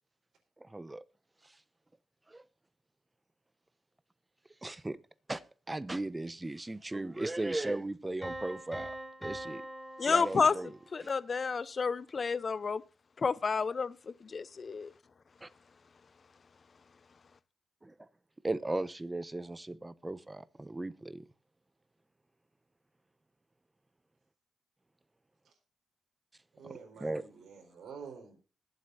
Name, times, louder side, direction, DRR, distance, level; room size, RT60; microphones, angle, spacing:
voice 1, 0.6-1.0 2.3-2.4 4.6-5.0 5.3-5.4 5.7-8.9 9.2-9.6 10.1-11.1 15.4-15.5 17.8-17.9 18.4-21.2 27.0-27.2, right 2 dB, 20° right, 0.9 m, -37 dB
Piano, 8.2-11.1, right 1 dB, ahead, 6.3 m, -43 dB
voice 2, 10.0-10.6 10.9-12.8 13.2-14.9, left 5 dB, 50° left, 0.7 m, -30 dB
voice 3, 26.5-28.4, right 6 dB, 80° right, 4.0 m, -48 dB
21.0 x 7.9 x 2.7 m
cardioid pair, 70°, 0 cm